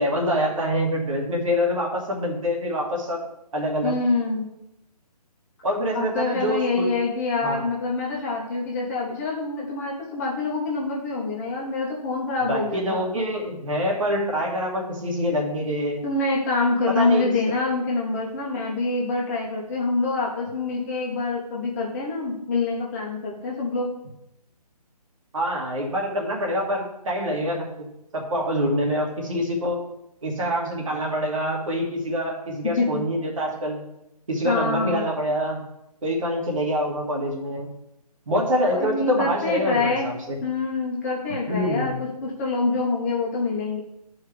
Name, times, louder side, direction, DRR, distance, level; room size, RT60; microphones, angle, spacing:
voice 1, 0.0-3.2 3.5-4.0 5.6-6.9 7.4-7.6 12.4-16.0 16.9-17.3 25.3-27.9 28.1-29.8 30.2-33.8 34.3-35.6 36.0-37.7 38.3-40.4 41.5-42.0, equal, 55° right, 0 dB, 2.1 m, -25 dB
voice 2, 3.8-4.4 5.9-13.0 16.0-23.9 32.8-32.9 34.4-35.1 38.7-40.1 40.4-43.8, left 3 dB, 25° left, -3 dB, 1.5 m, -26 dB
13.0 x 4.8 x 3.4 m, 0.86 s
figure-of-eight pair, 150°, 21 cm